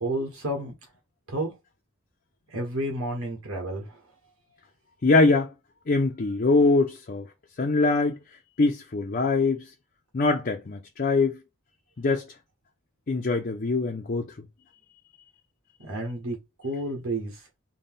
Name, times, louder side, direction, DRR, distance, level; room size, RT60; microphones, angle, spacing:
voice 1, 0.0-0.7 1.3-1.5 2.5-4.0 15.8-16.4 16.6-17.4, right 1 dB, 85° right, 1.3 m, -30 dB
voice 2, 5.0-5.5 5.9-7.2 7.6-8.2 8.6-9.7 10.1-11.4 12.0-12.3 13.1-14.3, left 3 dB, 40° left, 0.5 m, -23 dB
4.0 x 2.2 x 3.5 m
head